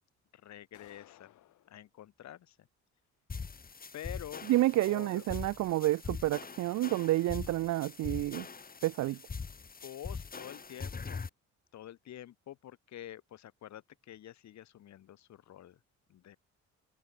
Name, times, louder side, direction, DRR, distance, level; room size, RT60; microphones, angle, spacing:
voice 1, 0.3-1.3 1.7-2.7 3.9-4.5 4.9-5.2 9.1-9.2 9.8-11.2 11.7-15.8 16.1-16.4, left 12 dB, 65° left, 1.3 m, -48 dB
sound 1, 0.7-1.8, left 14 dB, 80° left, 2.0 m, -59 dB
sound 2, 3.3-11.3, left 5 dB, 30° left, 2.2 m, -42 dB
voice 2, 4.5-8.4 8.8-9.2, right 16 dB, 70° right, 0.5 m, -29 dB
cardioid pair, 90°, 30 cm